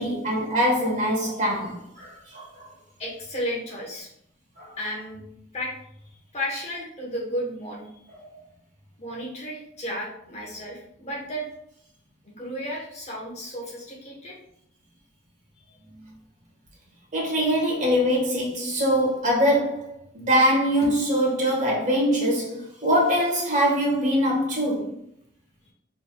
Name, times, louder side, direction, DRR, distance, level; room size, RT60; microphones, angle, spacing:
voice 1, 0.0-2.7 4.6-4.7 8.1-8.2 17.1-19.9 20.1-24.9, equal, 40° right, 1.3 m, -23 dB
voice 2, 3.0-4.1 4.8-5.2 5.5-5.7 6.3-8.0 9.0-11.4 12.4-14.4, equal, 35° left, 1.0 m, -33 dB
4.4 x 3.4 x 2.2 m
head